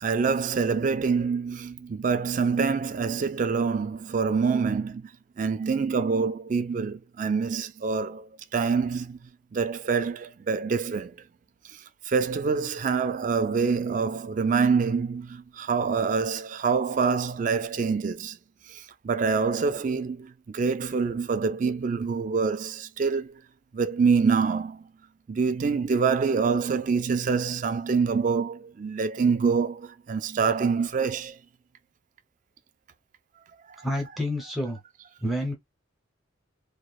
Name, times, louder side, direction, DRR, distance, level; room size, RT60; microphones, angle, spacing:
voice 1, 0.0-5.1 5.4-11.2 11.7-18.4 18.7-23.4 23.7-24.9 25.3-31.4 33.8-34.2, right 5 dB, 40° right, 0.3 m, -26 dB
voice 2, 33.8-34.8 35.2-35.5, left 1 dB, ahead, 0.6 m, -28 dB
2.9 x 2.1 x 2.3 m
head